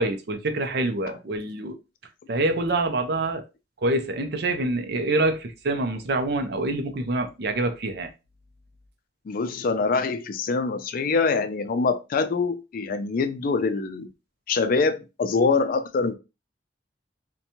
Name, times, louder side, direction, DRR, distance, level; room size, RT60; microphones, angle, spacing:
voice 1, 0.0-1.8 2.3-3.4 3.8-8.1, right 2 dB, 65° right, 0.5 m, -26 dB
voice 2, 9.3-14.1 14.5-16.1, left 4 dB, 55° left, 0.4 m, -24 dB
2.8 x 2.2 x 2.6 m
head